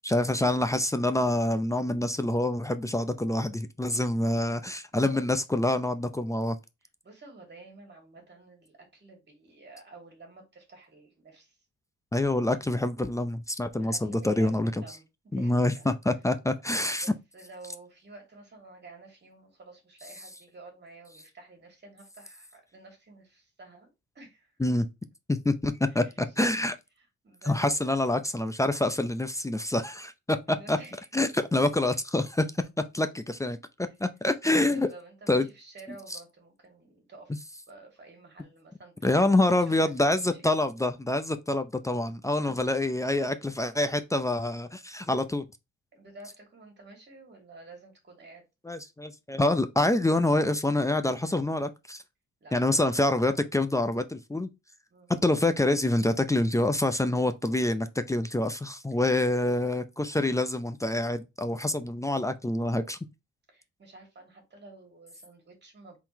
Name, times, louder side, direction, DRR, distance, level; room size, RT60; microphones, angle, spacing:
voice 1, 0.1-6.6 12.1-14.7 15.3-17.1 24.6-24.9 25.3-26.8 27.5-30.8 31.1-32.5 32.9-33.6 34.0-34.9 35.3-35.4 39.0-45.4 48.7-52.0 52.5-54.5 55.2-63.0, left 1 dB, 10° left, 0.5 m, -26 dB
voice 2, 7.0-11.6 13.8-15.9 16.7-23.9 24.1-24.5 25.8-26.3 27.0-27.9 30.5-31.1 34.7-37.3 37.7-40.5 42.5-42.8 45.9-48.4 52.4-53.0 54.9-55.1 58.9-59.0 61.4-61.7 63.5-66.0, right 3 dB, 35° right, 2.5 m, -51 dB
4.3 x 3.9 x 3.0 m
cardioid pair, 90°, 30 cm